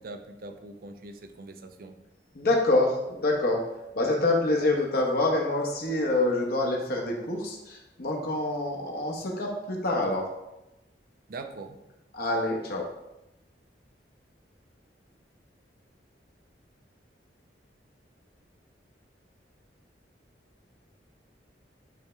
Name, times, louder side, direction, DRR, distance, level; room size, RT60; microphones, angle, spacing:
voice 1, 0.0-1.9 11.3-11.8, right 2 dB, 55° right, 7 dB, 0.5 m, -42 dB
voice 2, 2.3-3.6 3.9-10.3 12.1-12.9, left 2 dB, 60° left, 0 dB, 1.1 m, -26 dB
8.4 x 3.4 x 3.3 m, 0.94 s
head